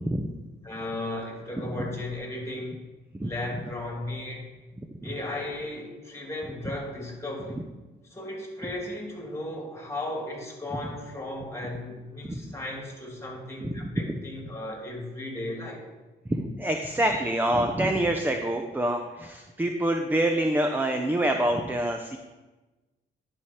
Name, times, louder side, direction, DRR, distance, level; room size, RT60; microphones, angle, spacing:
voice 1, 0.6-2.8 3.2-4.5 5.0-7.6 8.1-15.8, left 1 dB, 15° left, -1 dB, 2.5 m, -35 dB
voice 2, 1.6-1.9 3.1-3.3 12.2-12.4 13.6-14.0 16.3-22.2, right 1 dB, 10° right, 4 dB, 0.6 m, -26 dB
11.0 x 4.7 x 4.3 m, 1.1 s
cardioid pair, 90°, 20 cm